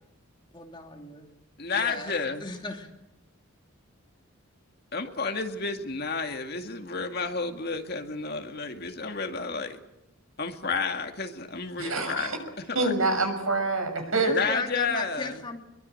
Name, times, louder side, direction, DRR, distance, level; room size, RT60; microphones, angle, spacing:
voice 1, 0.5-1.3 1.7-2.9 14.1-15.6, left 2 dB, 20° left, 3 dB, 2.7 m, -36 dB
voice 2, 1.6-2.5 4.9-9.8 10.4-12.3 12.7-12.9 14.3-15.3, left 4 dB, 50° left, 5 dB, 2.2 m, -31 dB
voice 3, 11.8-12.4 12.7-14.3, right 3 dB, 75° right, 5 dB, 6.5 m, -26 dB
24.0 x 22.5 x 7.8 m, 0.88 s
head